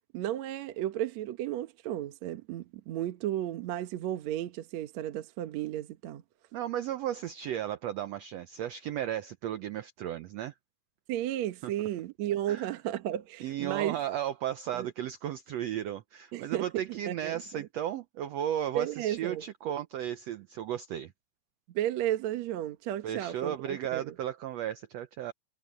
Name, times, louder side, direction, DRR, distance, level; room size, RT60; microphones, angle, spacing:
voice 1, 0.1-6.2 11.1-14.0 14.7-14.9 16.3-17.7 18.8-19.4 21.8-24.1, right 12 dB, 65° right, 2.1 m, -33 dB
voice 2, 6.5-10.5 11.6-11.7 12.5-12.8 13.4-21.1 23.0-25.3, right 11 dB, 85° right, 1.4 m, -35 dB
omnidirectional pair, 3.9 m